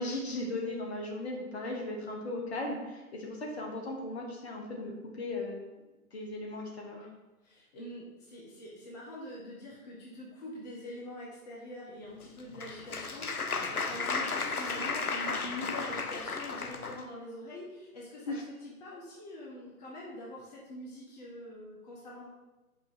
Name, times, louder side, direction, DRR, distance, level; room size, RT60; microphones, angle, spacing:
voice 1, 0.0-5.7 6.1-7.1 18.3-18.4, left 2 dB, 45° left, 0 dB, 1.4 m, -37 dB
voice 2, 7.4-18.4 18.6-22.3, left 1 dB, 30° left, -4 dB, 1.2 m, -44 dB
Applause, 12.2-17.0, left 4 dB, 80° left, 0.7 m, -34 dB
5.4 x 3.9 x 5.8 m, 1.1 s
figure-of-eight pair, 130°, 44 cm